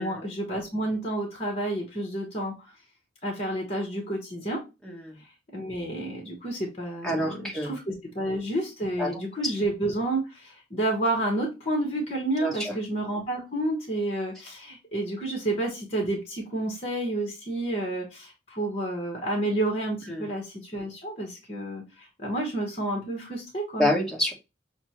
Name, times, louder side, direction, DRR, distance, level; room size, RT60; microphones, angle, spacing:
voice 1, 0.0-2.5 3.2-4.6 5.5-7.8 8.1-23.9, right 1 dB, 30° left, 1 dB, 1.0 m, -30 dB
voice 2, 4.8-5.2 7.0-7.7 9.0-9.5 12.4-12.8 20.1-20.3 23.8-24.3, left 1 dB, 5° left, -2 dB, 1.0 m, -28 dB
6.1 x 2.1 x 2.9 m, 0.27 s
head